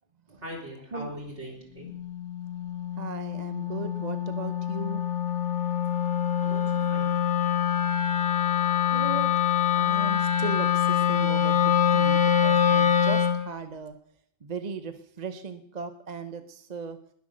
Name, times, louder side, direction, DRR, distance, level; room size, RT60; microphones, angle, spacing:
voice 1, 0.4-2.0 6.4-7.1, equal, 70° right, 0 dB, 4.2 m, -41 dB
Wind instrument woodwind instrument, 1.9-13.5, left 8 dB, 75° left, 1.6 m, -25 dB
voice 2, 3.0-5.0 8.9-9.3 9.7-14.0 14.4-17.0, right 4 dB, 40° right, 9 dB, 0.9 m, -37 dB
20.5 x 8.2 x 6.4 m, 0.67 s
omnidirectional pair, 1.2 m